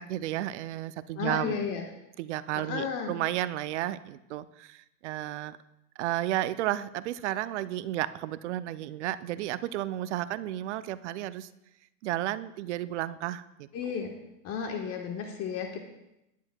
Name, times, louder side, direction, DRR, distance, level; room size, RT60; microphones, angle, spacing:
voice 1, 0.0-1.6 2.2-5.6 6.0-11.5 12.0-13.7, right 14 dB, 50° right, 15 dB, 0.5 m, -32 dB
voice 2, 1.2-1.8 2.7-3.1 13.7-14.1 14.4-15.8, left 6 dB, 30° left, 3 dB, 1.3 m, -33 dB
17.5 x 10.0 x 2.2 m, 0.88 s
hypercardioid pair, 115°, 47 cm